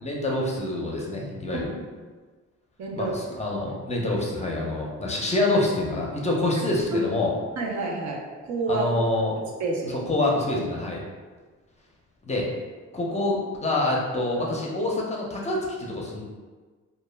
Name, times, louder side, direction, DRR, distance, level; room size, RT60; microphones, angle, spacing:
voice 1, 0.0-1.7 2.9-7.3 8.7-9.4 10.1-11.0 12.2-12.5 12.9-16.2, left 2 dB, 25° left, -2 dB, 0.5 m, -26 dB
voice 2, 2.8-3.1 6.9-7.0 7.6-8.9 9.6-9.9, right 3 dB, 70° right, -1 dB, 0.6 m, -28 dB
2.2 x 2.0 x 3.2 m, 1.4 s
cardioid pair, 90°, 30 cm